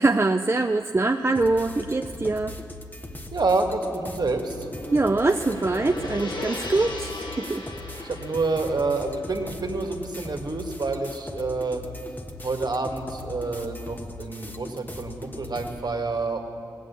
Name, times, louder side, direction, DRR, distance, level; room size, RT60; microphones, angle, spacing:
voice 1, 0.0-2.6 4.9-7.7 8.0-8.1, right 2 dB, 30° right, 6 dB, 0.5 m, -23 dB
sound 1, 1.3-15.8, left 2 dB, 20° left, 1.4 m, -40 dB
voice 2, 3.3-4.7 8.0-11.8 12.4-16.4, right 3 dB, 55° right, 4 dB, 1.6 m, -28 dB
Gong, 3.8-12.2, left 2 dB, 65° left, 1.6 m, -39 dB
17.5 x 8.4 x 8.3 m, 2.5 s
cardioid pair, 40°, 8 cm